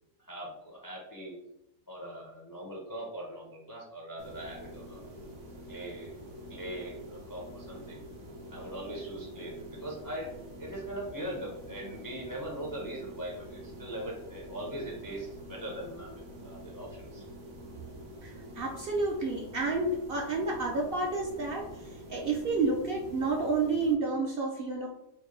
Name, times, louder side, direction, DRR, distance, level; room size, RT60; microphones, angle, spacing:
voice 1, 0.2-1.4 1.9-5.1 5.7-6.1 6.5-8.0 8.5-10.3 10.6-17.2, right 1 dB, 30° left, -3 dB, 0.3 m, -41 dB
sound 1, 4.2-24.0, equal, 75° right, 1.4 m, -46 dB
voice 2, 18.2-21.7 22.1-24.9, right 3 dB, 60° right, -1 dB, 0.6 m, -30 dB
4.3 x 2.2 x 3.1 m, 0.86 s
omnidirectional pair, 1.4 m